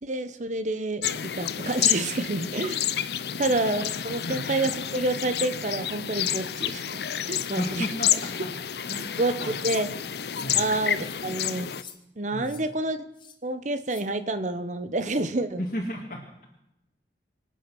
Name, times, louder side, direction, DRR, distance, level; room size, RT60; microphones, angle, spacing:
voice 1, 0.0-2.8 3.4-7.9 9.2-9.3 9.6-9.9 10.5-11.7 12.2-13.1 13.4-15.6, right 2 dB, 45° right, 11 dB, 1.0 m, -28 dB
sound 1, 1.0-11.8, left 10 dB, 65° left, 0.6 m, -29 dB
sound 2, 7.3-7.5 8.0-8.3 8.8-9.1 9.6-9.9 10.3-10.5 11.0-11.2 11.7-12.0 12.4-12.6 13.1-13.4 13.9-14.0, left 8 dB, 25° left, 1.5 m, -47 dB
voice 2, 7.6-8.3 8.9-9.5 10.4-10.7 12.3-12.6 15.6-16.2, equal, 50° left, -1 dB, 1.9 m, -34 dB
25.0 x 8.5 x 6.1 m, 0.89 s
head